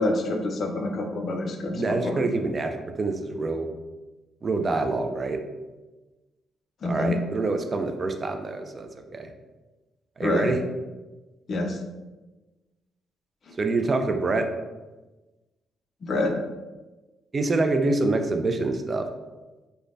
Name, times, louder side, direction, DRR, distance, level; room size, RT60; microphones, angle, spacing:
voice 1, 0.0-2.2 6.8-7.2 10.2-10.5 11.5-11.8 16.0-16.3, left 2 dB, 50° left, 3 dB, 0.4 m, -27 dB
voice 2, 1.7-3.7 4.4-5.4 6.9-9.3 10.2-10.6 13.6-14.5 17.3-19.1, right 3 dB, 35° right, 6 dB, 0.3 m, -26 dB
3.2 x 2.0 x 2.5 m, 1.2 s
cardioid pair, 90°, 0 cm